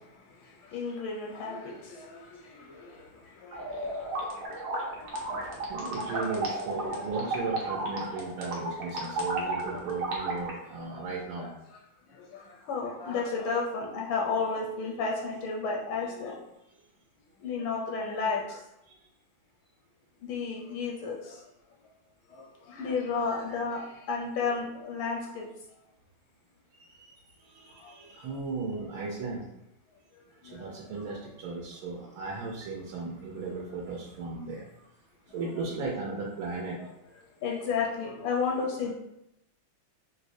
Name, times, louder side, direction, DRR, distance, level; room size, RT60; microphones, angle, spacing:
voice 1, 0.7-2.2 3.5-3.6 5.1-5.2 5.9-7.0 9.7-9.8 11.4-11.5 12.7-16.4 17.4-18.6 20.3-21.2 22.7-23.8 24.1-25.5 36.8-36.9 37.4-38.9, left 4 dB, 80° left, -1 dB, 1.3 m, -32 dB
sound 1, 3.5-10.5, right 2 dB, 65° right, 0.9 m, -33 dB
voice 2, 5.7-11.5 18.9-19.0 26.7-29.5 30.4-34.8 35.3-36.8, right 4 dB, 85° right, -3 dB, 1.5 m, -36 dB
4.6 x 2.0 x 2.6 m, 0.85 s
omnidirectional pair, 2.2 m